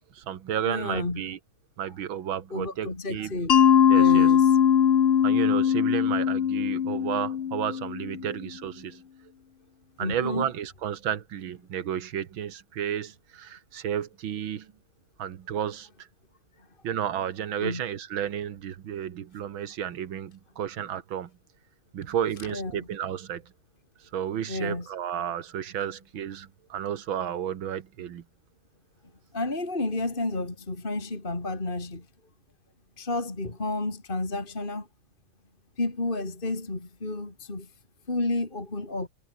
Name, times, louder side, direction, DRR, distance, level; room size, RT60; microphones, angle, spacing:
voice 1, 0.1-1.4 1.8-3.3 3.9-4.3 5.2-9.0 10.0-14.7 15.2-15.9 16.8-21.3 21.9-23.4 24.1-28.2, right 9 dB, 70° right, 2.1 m, -32 dB
voice 2, 0.7-1.2 2.5-3.5 3.9-4.6 10.0-10.5 16.6-16.7 17.6-17.8 22.5-22.9 24.5-24.9 29.3-32.1 33.0-34.9 35.8-37.7 38.1-39.1, left 2 dB, 25° left, 3.4 m, -31 dB
Mallet percussion, 3.5-8.3, left 8 dB, 90° left, 0.5 m, -21 dB
omnidirectional pair, 2.3 m